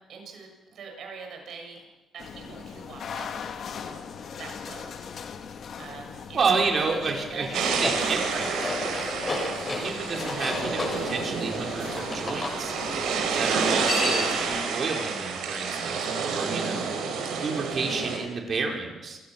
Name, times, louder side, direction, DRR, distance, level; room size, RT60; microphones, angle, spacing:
voice 1, 0.1-1.8 2.1-3.3 3.8-5.0 5.8-8.1 8.3-8.4, right 5 dB, 65° right, 2 dB, 6.9 m, -43 dB
sound 1, 2.2-14.6, left 6 dB, 60° left, 1.8 m, -40 dB
voice 2, 6.3-8.5 9.7-12.7 13.4-16.9 17.4-19.2, right 4 dB, 50° right, 0 dB, 5.1 m, -30 dB
sound 2, 7.5-18.2, right 5 dB, 90° right, 4.7 m, -29 dB
sound 3, 7.7-12.6 13.6-14.5, left 2 dB, 35° left, 7.3 m, -33 dB
28.0 x 15.5 x 6.2 m, 1.2 s
cardioid pair, 90°, 0 cm